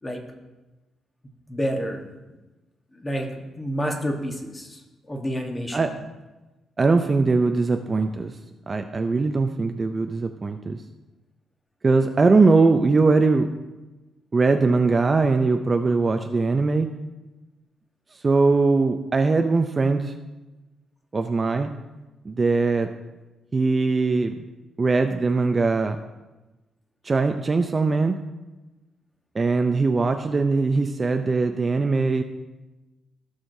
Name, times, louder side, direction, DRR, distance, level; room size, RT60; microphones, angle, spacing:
voice 1, 1.5-2.0 2.9-4.8 5.1-5.9, equal, 15° left, 2 dB, 1.2 m, -29 dB
voice 2, 6.8-8.3 8.7-10.8 11.8-13.5 14.3-16.9 18.2-20.1 21.1-21.7 22.3-22.9 23.5-24.3 24.8-26.0 27.0-28.2 29.3-32.2, right 3 dB, 25° right, 6 dB, 0.4 m, -21 dB
16.0 x 6.3 x 2.7 m, 1.1 s
cardioid pair, 150°, 0 cm